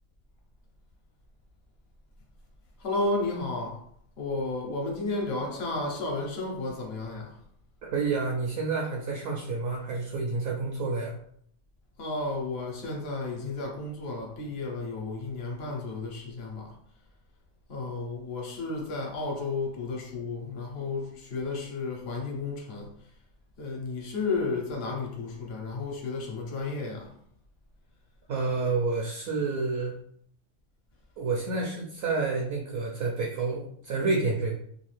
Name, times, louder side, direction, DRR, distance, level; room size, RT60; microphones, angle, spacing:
voice 1, 2.8-3.8 4.2-7.4 12.0-16.8 17.7-22.9 23.6-27.1, left 3 dB, 60° left, 0.9 m, -32 dB
voice 2, 7.8-11.2 28.3-29.9 31.2-34.6, right 3 dB, 65° right, 0.7 m, -29 dB
2.6 x 2.4 x 3.2 m
omnidirectional pair, 1.3 m